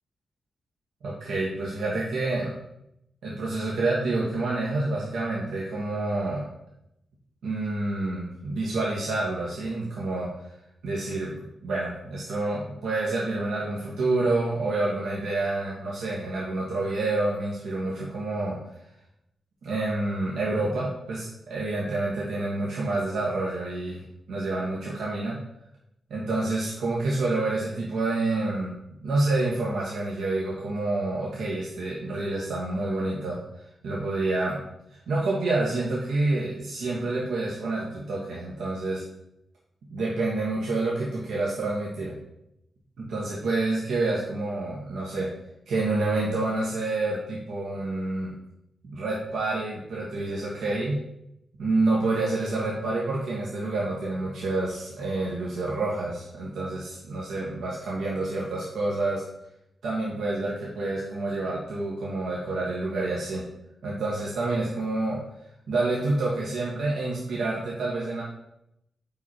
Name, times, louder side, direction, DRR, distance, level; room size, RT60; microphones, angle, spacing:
voice 1, 1.0-2.6 3.2-6.5 7.4-10.3 10.8-18.6 19.6-24.0 24.3-25.4 26.1-33.4 33.8-34.6 35.1-39.0 39.9-42.2 43.0-45.3 45.7-48.3 48.8-51.0 51.6-59.2 59.8-63.4 63.8-65.2 65.7-68.2, right 2 dB, 90° right, -5 dB, 1.3 m, -28 dB
5.6 x 4.8 x 4.3 m, 0.81 s
cardioid pair, 100°, 0 cm